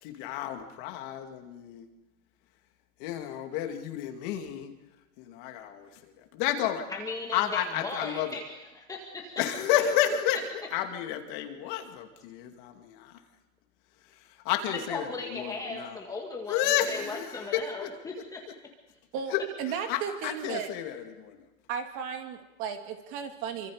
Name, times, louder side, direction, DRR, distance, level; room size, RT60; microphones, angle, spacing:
voice 1, 0.0-1.9 3.0-4.7 5.2-5.9 6.3-6.8 7.3-8.3 9.4-10.4 10.7-13.1 14.4-16.0 16.5-17.9 19.3-19.4 19.9-21.4, left 11 dB, 35° left, 5 dB, 2.5 m, -31 dB
voice 2, 6.9-9.3 14.7-18.4, left 3 dB, 10° left, 0 dB, 2.0 m, -37 dB
voice 3, 19.1-20.7 21.7-23.7, right 7 dB, 30° right, 5 dB, 2.3 m, -35 dB
28.0 x 25.0 x 5.1 m, 1.1 s
hypercardioid pair, 155°, 44 cm